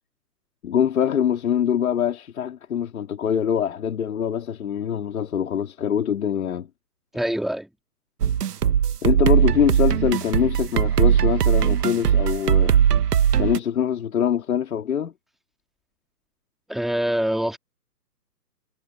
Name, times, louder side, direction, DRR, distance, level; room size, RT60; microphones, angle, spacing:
voice 1, 0.6-6.7 9.0-12.8 13.4-15.1, left 9 dB, 55° left, 3.7 m, -24 dB
voice 2, 7.1-7.7 16.7-17.6, equal, ahead, 2.0 m, -24 dB
sound 1, 8.2-13.6, right 9 dB, 65° right, 1.2 m, -19 dB
hypercardioid pair, 155°, 50 cm